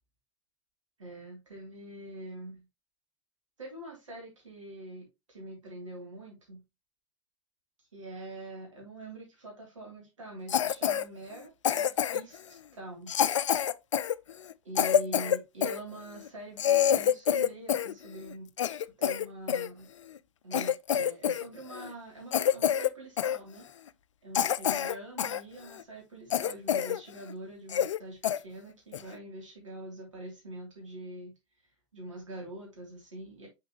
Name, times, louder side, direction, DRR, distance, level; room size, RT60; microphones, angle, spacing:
voice 1, 1.0-2.6 3.6-6.6 7.9-13.1 14.6-16.6 16.9-19.9 20.4-23.7 24.2-31.3 31.9-33.5, right 1 dB, 80° right, 3.2 m, -44 dB
Cough, 10.5-11.0 11.6-12.4 13.1-15.8 16.3-16.4 16.6-17.9 18.2-19.7 20.2-20.3 20.5-21.4 21.7-21.9 22.3-22.9 23.2-23.4 23.9-24.0 24.3-25.4 25.8-25.9 26.3-27.0 27.3-27.4 27.7-28.0 28.2-28.4 28.9-29.1, left 9 dB, 75° left, 0.4 m, -27 dB
6.3 x 5.7 x 3.1 m
figure-of-eight pair, 80°, 16 cm